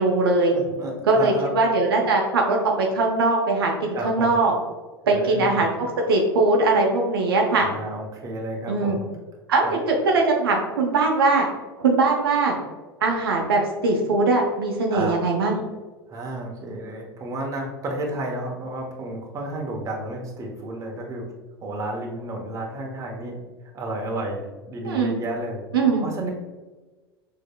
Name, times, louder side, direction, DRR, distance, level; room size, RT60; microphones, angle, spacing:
voice 1, 0.0-0.5 1.0-4.5 5.1-7.7 8.7-9.0 9.5-11.5 11.8-12.5 13.0-15.6 24.8-25.1 25.7-26.0, right 3 dB, 70° right, 1 dB, 0.7 m, -21 dB
voice 2, 0.5-1.5 3.9-4.4 5.0-5.6 7.6-9.1 9.6-9.7 14.9-15.2 16.1-21.2 21.6-23.4 23.7-25.6 26.0-26.3, right 2 dB, 25° right, 0 dB, 0.9 m, -31 dB
6.2 x 2.8 x 2.2 m, 1.2 s
figure-of-eight pair, 80°, 13 cm